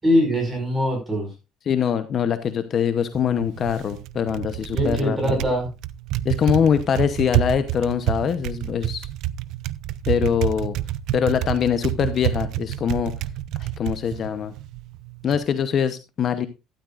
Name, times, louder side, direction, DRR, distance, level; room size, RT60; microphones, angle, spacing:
voice 1, 0.0-1.3 4.7-5.7, left 1 dB, 15° right, 3 dB, 5.4 m, -22 dB
voice 2, 1.7-5.4 6.2-9.1 10.1-10.8 11.1-13.1 13.6-14.5 15.2-16.5, left 8 dB, 35° left, 10 dB, 0.8 m, -23 dB
Typing, 3.0-15.4, right 14 dB, 60° right, 0.5 m, -28 dB
13.0 x 12.0 x 2.4 m, 0.26 s
cardioid pair, 160°, 0 cm